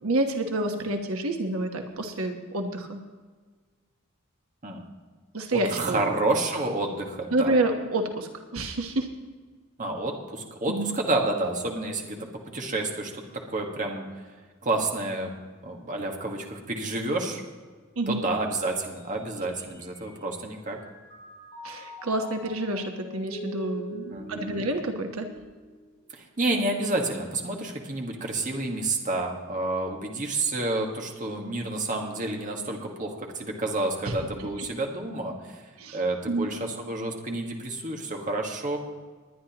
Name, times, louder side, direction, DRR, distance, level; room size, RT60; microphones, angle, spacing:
voice 1, 0.0-3.0 5.3-6.0 7.3-9.1 10.7-10.9 18.0-18.2 21.6-25.3 34.0-34.1 35.8-36.0 36.3-36.5, right 2 dB, 85° right, 4 dB, 1.1 m, -28 dB
voice 2, 5.7-7.5 9.8-12.2 12.5-14.1 14.6-15.3 15.6-17.4 18.1-20.8 24.1-24.6 26.1-35.6 35.9-38.8, right 2 dB, 40° right, 1 dB, 1.6 m, -29 dB
Mallet percussion, 19.4-20.3 20.7-26.1, right 2 dB, 30° left, 4.3 m, -43 dB
20.5 x 10.0 x 3.0 m, 1.5 s
head